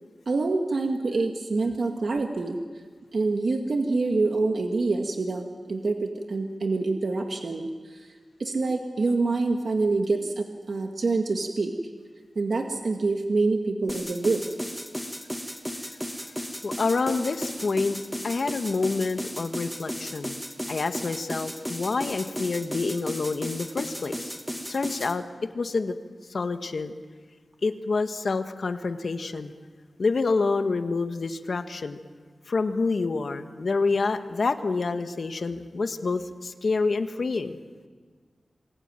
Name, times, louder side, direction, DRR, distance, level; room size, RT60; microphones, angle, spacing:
voice 1, 0.3-2.6 3.1-11.7 12.4-14.4, right 3 dB, 60° right, 3 dB, 2.0 m, -26 dB
sound 1, 13.9-25.1, equal, ahead, 2.2 m, -35 dB
voice 2, 16.6-18.0 18.2-20.4 20.7-24.3 24.7-25.2 25.5-25.9 26.3-26.9 27.6-29.5 30.0-32.0 32.5-37.6, left 4 dB, 65° left, 7 dB, 1.7 m, -27 dB
28.0 x 21.5 x 9.2 m, 1.5 s
wide cardioid pair, 100°, 0 cm